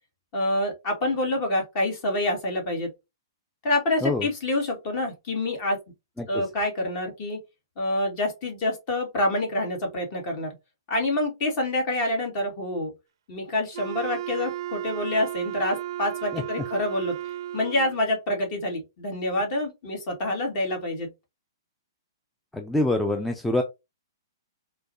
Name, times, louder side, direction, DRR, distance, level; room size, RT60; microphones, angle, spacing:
voice 1, 0.3-2.9 3.6-5.8 6.3-7.4 7.8-10.6 10.9-12.9 13.3-17.2 17.5-21.1, left 1 dB, 40° left, 1.6 m, -27 dB
Wind instrument woodwind instrument, 13.7-18.0, right 13 dB, 70° right, 0.4 m, -34 dB
voice 2, 22.5-23.6, left 2 dB, 5° left, 0.4 m, -25 dB
4.5 x 2.2 x 2.6 m
hypercardioid pair, 135°, 2 cm